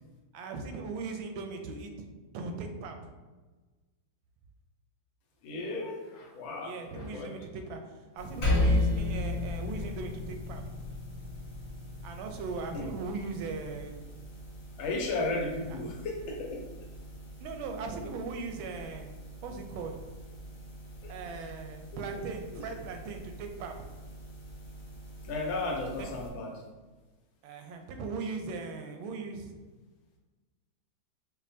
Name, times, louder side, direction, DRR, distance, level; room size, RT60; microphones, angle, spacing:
voice 1, 0.3-1.9 2.3-3.1 6.6-10.8 12.0-14.0 15.7-15.8 17.4-19.1 19.4-20.0 21.1-23.9 26.0-26.1 27.4-29.5, right 4 dB, 85° right, 5 dB, 1.4 m, -39 dB
voice 2, 5.4-7.3 12.7-12.9 14.8-16.7 21.0-21.1 21.9-22.2 22.5-22.6 25.2-26.6, left 2 dB, 85° left, 0 dB, 1.5 m, -35 dB
sound 1, 8.2-26.3, right 1 dB, 50° left, 1.1 m, -47 dB
Percussion, 8.4-13.2, left 2 dB, 70° left, 1.6 m, -31 dB
5.4 x 2.1 x 2.6 m, 1.2 s
omnidirectional pair, 2.1 m